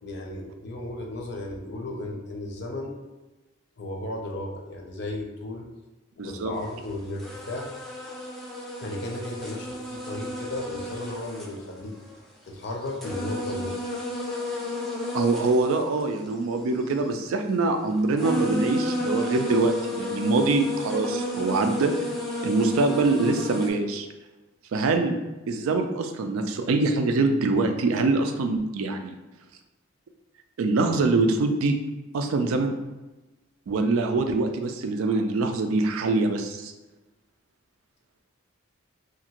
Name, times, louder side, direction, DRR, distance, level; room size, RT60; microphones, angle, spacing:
voice 1, 0.0-2.9 3.8-5.7 6.1-7.7 8.8-11.9 12.5-13.8 14.3-14.5, left 1 dB, 55° left, 1 dB, 0.5 m, -35 dB
voice 2, 6.2-6.5 15.1-21.9 22.4-24.1 24.7-25.2 25.5-29.1 30.6-31.8 32.1-32.8 33.7-36.7, right 3 dB, 85° right, 6 dB, 0.4 m, -24 dB
sound 1, 6.7-6.8 7.2-12.2 12.6-17.0 17.9-18.0 18.2-23.7, left 1 dB, ahead, 0.4 m, -32 dB
2.8 x 2.5 x 2.8 m, 1.1 s
head